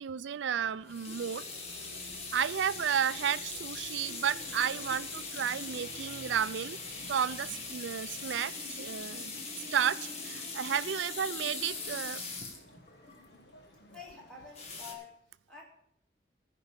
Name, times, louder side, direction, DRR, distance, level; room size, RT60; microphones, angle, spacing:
voice 1, 0.0-1.4 2.3-6.8 7.1-12.2, right 8 dB, 90° right, 18 dB, 0.4 m, -32 dB
sound 1, 0.6-15.0, left 1 dB, 60° left, 1.4 m, -54 dB
sound 2, 0.9-13.2 14.5-14.9, left 3 dB, 35° left, 1.6 m, -41 dB
voice 2, 13.9-15.1 15.5-15.6, left 5 dB, 5° left, -4 dB, 3.2 m, -48 dB
14.5 x 5.3 x 7.1 m, 0.72 s
head